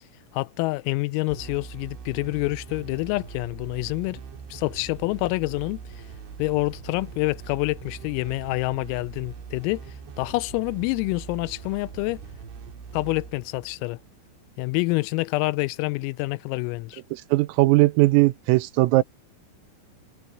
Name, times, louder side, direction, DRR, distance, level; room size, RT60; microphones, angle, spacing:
voice 1, 0.3-4.2 4.5-5.8 6.4-9.8 10.2-12.2 12.9-14.0 14.6-17.0, left 23 dB, 90° left, 3.3 m, -27 dB
sound 1, 1.3-14.6, right 6 dB, 65° right, 5.8 m, -42 dB
voice 2, 17.3-19.0, right 20 dB, 85° right, 3.5 m, -18 dB
omnidirectional pair, 6.0 m